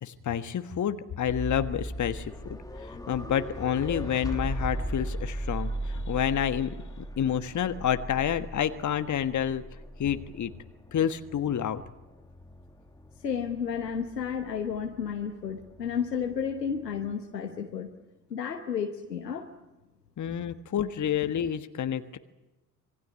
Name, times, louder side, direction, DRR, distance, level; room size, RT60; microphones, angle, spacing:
voice 1, 0.0-9.6 10.0-10.5 10.9-11.8 20.2-22.2, left 9 dB, 35° left, 10 dB, 1.4 m, -29 dB
sound 1, 1.2-17.1, right 1 dB, 5° left, 2.0 m, -38 dB
voice 2, 13.2-17.9 18.3-19.5, left 7 dB, 85° left, 4 dB, 1.2 m, -32 dB
26.0 x 19.5 x 9.8 m, 1.0 s
figure-of-eight pair, 45°, 48 cm